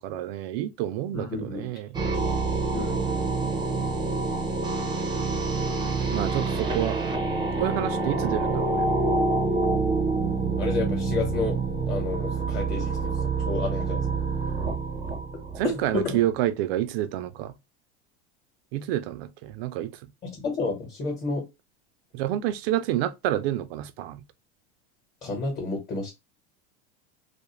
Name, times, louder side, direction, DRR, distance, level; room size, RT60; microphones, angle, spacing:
voice 1, 0.0-2.0 6.1-7.0 7.6-8.9 15.6-17.5 18.7-19.9 22.1-24.2, right 12 dB, 65° right, 0.5 m, -28 dB
voice 2, 1.1-1.7 2.7-3.3 10.6-11.6 11.9-14.0 15.6-16.2 20.2-21.4 25.2-26.1, left 3 dB, 30° left, 1.1 m, -31 dB
sound 1, 1.9-16.0, right 3 dB, 15° right, 0.6 m, -27 dB
2.5 x 2.0 x 2.9 m
supercardioid pair, 125°, 33 cm